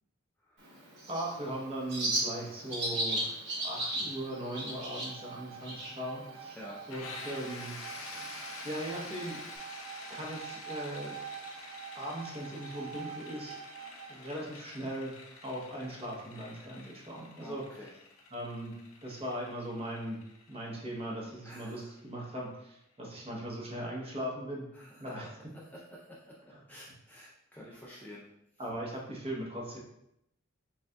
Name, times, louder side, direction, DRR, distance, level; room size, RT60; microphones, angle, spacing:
voice 1, 0.4-0.7 6.6-6.8 17.4-17.9 21.4-21.9 22.2-22.3 24.7-25.0 25.6-26.4 26.7-28.2, equal, 10° left, -5 dB, 0.4 m, -49 dB
Bird, 0.6-9.6, right 1 dB, 55° right, 1.1 m, -38 dB
voice 2, 1.1-6.6 6.9-7.8 8.6-9.4 10.1-11.2 11.9-13.6 14.1-15.1 15.4-17.6 18.3-18.8 19.0-20.2 20.5-24.7 25.0-25.5 26.5-26.6 28.6-29.8, right 1 dB, 30° right, -2 dB, 0.9 m, -39 dB
Bowed string instrument, 3.8-14.3, right 7 dB, 75° right, 0.4 m, -47 dB
sound 1, 6.9-22.5, left 3 dB, 65° left, 0.7 m, -48 dB
6.3 x 2.4 x 2.2 m, 0.80 s
head